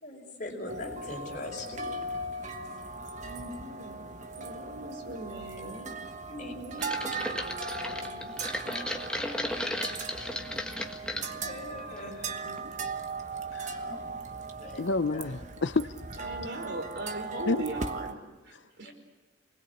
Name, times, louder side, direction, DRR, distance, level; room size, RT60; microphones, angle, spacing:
voice 1, 0.0-2.0 2.5-2.8 3.2-3.6 6.3-7.2 8.6-10.3 11.4-12.6 13.9-14.0 14.6-14.8 15.1-15.3 18.8-18.9, left 1 dB, 40° left, 1 dB, 5.3 m, -42 dB
sound 1, 0.7-18.1, right 3 dB, 40° right, 1.3 m, -38 dB
voice 2, 3.2-6.0 6.4-8.5 10.4-11.8 12.1-12.2 12.4-12.7 16.2-18.9, right 1 dB, 65° right, 3 dB, 5.1 m, -41 dB
sound 2, 6.8-11.3 11.8-12.3 12.6-12.7, left 1 dB, 5° left, 1.5 m, -35 dB
voice 3, 13.5-13.9 14.8-15.9 17.5-17.6, left 3 dB, 70° left, 13 dB, 0.8 m, -29 dB
28.0 x 20.5 x 8.5 m, 1.2 s
head